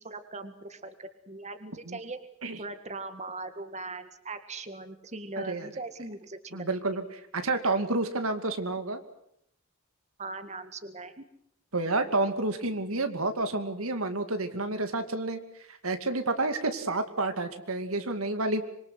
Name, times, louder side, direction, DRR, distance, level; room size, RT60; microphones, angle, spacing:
voice 1, 0.0-2.2 2.6-7.0 10.2-11.2, right 3 dB, 35° right, 9 dB, 1.9 m, -40 dB
voice 2, 6.5-7.1 7.3-9.0 11.7-15.4 15.8-18.6, right 2 dB, 85° right, 8 dB, 2.6 m, -29 dB
25.5 x 23.0 x 8.2 m, 0.72 s
head